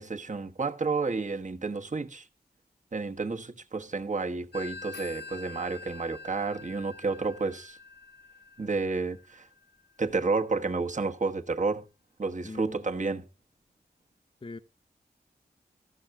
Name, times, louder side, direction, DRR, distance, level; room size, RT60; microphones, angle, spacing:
voice 1, 0.0-2.2 2.9-7.8 8.6-9.5 10.0-11.8 12.2-13.3, right 4 dB, 45° right, 1.3 m, -31 dB
Telephone, 4.5-9.9, left 4 dB, 75° left, 0.8 m, -46 dB
voice 2, 12.4-12.9 14.4-14.6, left 3 dB, 30° left, 0.7 m, -41 dB
14.0 x 6.5 x 5.8 m
wide cardioid pair, 70°, 17 cm